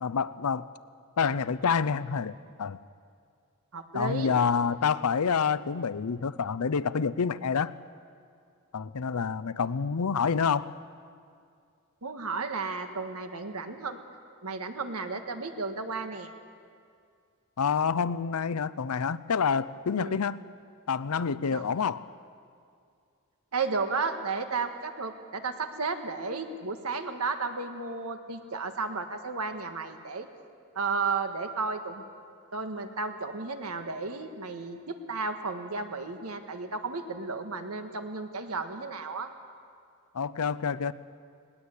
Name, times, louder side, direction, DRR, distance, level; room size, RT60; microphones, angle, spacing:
voice 1, 0.0-0.7 1.2-2.3 2.6-2.8 3.9-7.7 8.7-10.7 17.6-20.4 20.9-22.0 40.1-40.9, left 6 dB, 85° left, 16 dB, 0.6 m, -27 dB
voice 2, 3.7-4.3 12.0-14.0 14.4-16.3 19.9-20.2 21.5-21.7 23.5-30.3 30.7-32.0 32.5-39.3, right 4 dB, 85° right, 7 dB, 1.6 m, -33 dB
20.0 x 18.5 x 8.3 m, 2.3 s
head